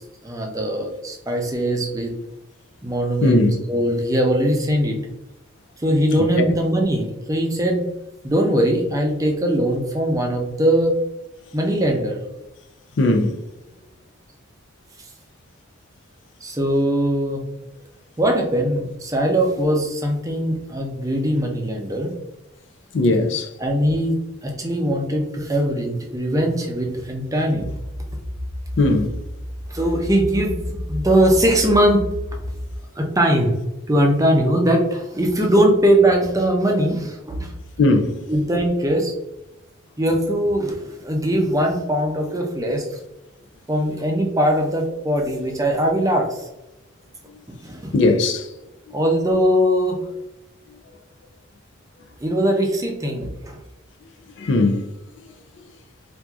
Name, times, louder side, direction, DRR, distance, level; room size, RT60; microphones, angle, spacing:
voice 1, 0.2-2.1 2.8-5.0 5.8-7.8 8.2-10.9 11.5-12.2 16.4-17.4 18.2-22.1 23.6-27.7 29.7-32.1 33.0-33.5 33.9-37.5 38.3-39.1 40.0-43.0 43.7-46.5 47.5-47.9 48.9-50.0 52.2-53.6, right 1 dB, 15° right, 0.5 m, -21 dB
voice 2, 3.2-3.5 6.4-6.5 13.0-13.3 22.9-23.5 28.8-29.2 37.8-38.2 47.9-48.5 54.4-54.8, left 2 dB, 60° left, 0.5 m, -18 dB
sound 1, 27.6-32.8, equal, 10° left, 1.0 m, -31 dB
4.5 x 2.6 x 2.3 m
head